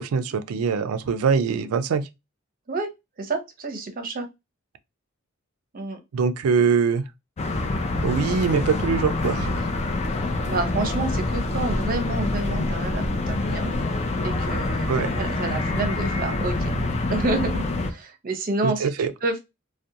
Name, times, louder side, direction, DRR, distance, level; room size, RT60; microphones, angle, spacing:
voice 1, 0.0-2.0 6.1-7.0 8.0-9.5 14.9-15.1 18.6-19.1, right 5 dB, 80° right, 0.4 m, -23 dB
voice 2, 3.2-4.3 5.7-6.0 10.4-13.7 14.2-14.9 15.2-16.5 17.1-19.4, right 2 dB, 45° right, 0.6 m, -29 dB
sound 1, 7.4-17.9, left 2 dB, 30° left, 0.4 m, -26 dB
2.4 x 2.2 x 2.7 m
head